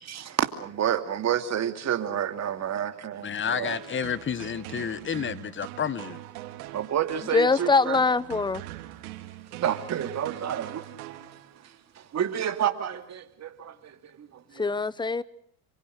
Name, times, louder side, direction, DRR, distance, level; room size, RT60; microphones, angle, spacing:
voice 1, 0.0-3.8 6.7-8.0 9.5-10.8 12.0-14.7, right 9 dB, 35° right, 2.7 m, -30 dB
voice 2, 3.2-6.1, left 7 dB, 25° left, 1.3 m, -30 dB
sound 1, 3.7-11.8, right 15 dB, 80° right, 3.2 m, -42 dB
voice 3, 7.3-8.6 14.6-15.2, left 4 dB, 10° left, 1.0 m, -23 dB
28.0 x 24.5 x 6.7 m
supercardioid pair, 105°, 44 cm